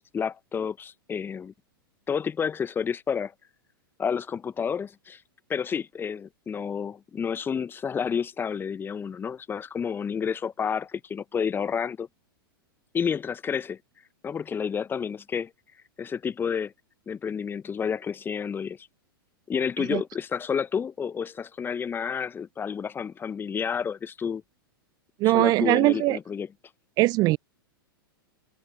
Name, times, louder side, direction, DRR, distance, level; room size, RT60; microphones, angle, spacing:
voice 1, 0.0-1.5 2.1-3.3 4.0-5.2 5.5-12.1 12.9-13.8 14.2-15.5 16.0-16.7 17.1-18.9 19.5-24.4 25.2-26.5, left 7 dB, 15° left, 0.9 m, -30 dB
voice 2, 25.2-26.2 27.0-27.4, right 20 dB, 30° right, 0.4 m, -21 dB
figure-of-eight pair, 100°, 12 cm